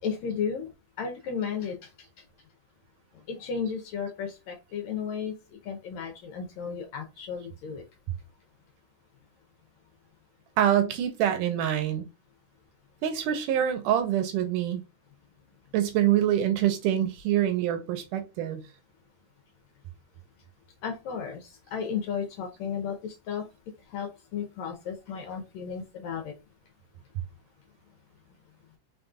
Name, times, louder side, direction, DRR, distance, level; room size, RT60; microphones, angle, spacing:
voice 1, 0.0-0.7 1.0-1.9 3.1-7.8 20.8-23.4 23.8-26.3, left 6 dB, 75° left, 1.8 m, -34 dB
voice 2, 10.6-12.1 13.0-14.8 15.7-18.6, right 11 dB, 80° right, 2.2 m, -25 dB
5.3 x 4.0 x 2.3 m
omnidirectional pair, 3.9 m